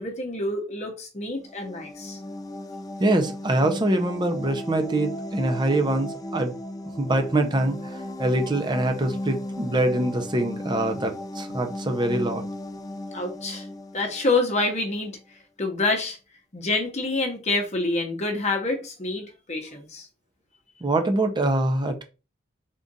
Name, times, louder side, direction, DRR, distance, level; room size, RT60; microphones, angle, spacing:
voice 1, 0.0-2.2 13.1-13.7 13.9-15.2 15.6-16.2 16.5-20.1, left 2 dB, 35° left, 0.9 m, -27 dB
sound 1, 1.3-14.9, left 1 dB, 20° left, 0.3 m, -36 dB
voice 2, 3.0-6.5 7.0-7.8 8.2-12.4 20.8-22.0, right 1 dB, 25° right, 0.6 m, -24 dB
3.7 x 2.5 x 4.0 m
head